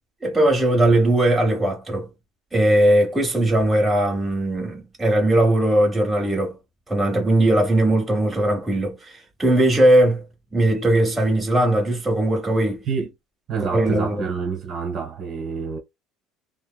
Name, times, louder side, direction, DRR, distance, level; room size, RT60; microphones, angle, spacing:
voice 1, 0.2-2.1 2.5-6.5 6.9-10.2 10.5-12.8 13.6-14.2, right 1 dB, 10° right, 1.1 m, -19 dB
voice 2, 13.5-15.8, right 5 dB, 50° right, 1.3 m, -27 dB
2.8 x 2.0 x 2.2 m
supercardioid pair, 105°, 0 cm